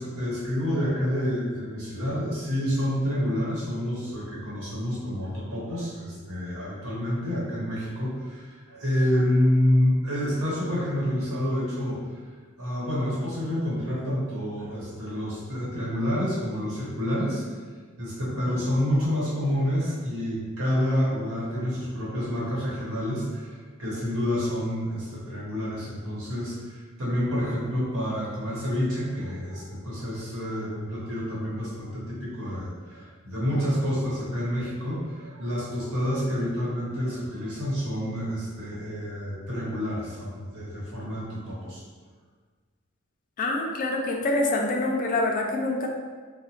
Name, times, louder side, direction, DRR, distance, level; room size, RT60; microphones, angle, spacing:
voice 1, 0.0-12.0 12.6-17.4 18.0-41.8, equal, 85° right, -7 dB, 1.0 m, -28 dB
voice 2, 43.4-45.9, left 2 dB, 40° left, 1 dB, 0.3 m, -26 dB
2.8 x 2.0 x 2.8 m, 1.5 s
head